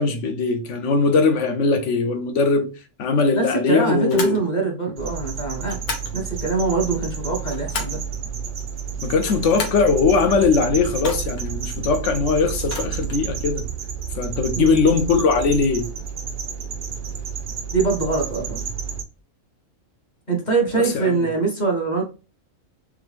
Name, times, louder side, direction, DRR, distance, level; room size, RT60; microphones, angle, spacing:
voice 1, 0.0-2.7 3.0-4.4 9.0-13.6 14.2-15.9 20.9-21.2, left 4 dB, 65° left, 1.0 m, -20 dB
voice 2, 3.3-5.8 6.1-8.0 14.5-14.7 17.7-18.6 20.3-22.0, right 4 dB, 35° left, 1.1 m, -23 dB
sound 1, 4.1-4.4 5.6-6.1 7.2-8.1 9.1-9.9 11.0-11.5 12.6-13.3, left 3 dB, 85° left, 1.4 m, -32 dB
sound 2, 5.0-19.0, right 6 dB, 60° right, 0.5 m, -31 dB
sound 3, 9.8-15.6, right 17 dB, 80° right, 1.0 m, -36 dB
3.7 x 3.3 x 3.2 m
omnidirectional pair, 1.4 m